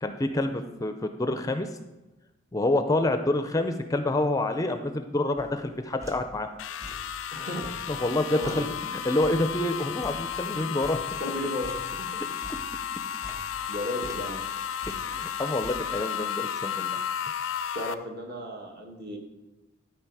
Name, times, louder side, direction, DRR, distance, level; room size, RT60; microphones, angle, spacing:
voice 1, 0.0-1.7 2.5-6.5 7.9-8.7 9.0-11.0 14.9-17.0, left 2 dB, 20° left, 8 dB, 0.4 m, -27 dB
sound 1, 5.4-6.5 6.8-7.3 7.6-10.5 10.8-12.1 12.4-14.5 14.8-15.8, equal, 15° right, 0.9 m, -46 dB
sound 2, 6.6-17.9, left 8 dB, 80° left, 0.4 m, -33 dB
voice 2, 7.3-7.7 8.3-8.7 10.4-10.5 11.2-12.2 13.5-14.4 17.7-19.2, left 1 dB, 55° right, 2 dB, 1.6 m, -35 dB
12.5 x 4.8 x 4.7 m, 1.1 s
head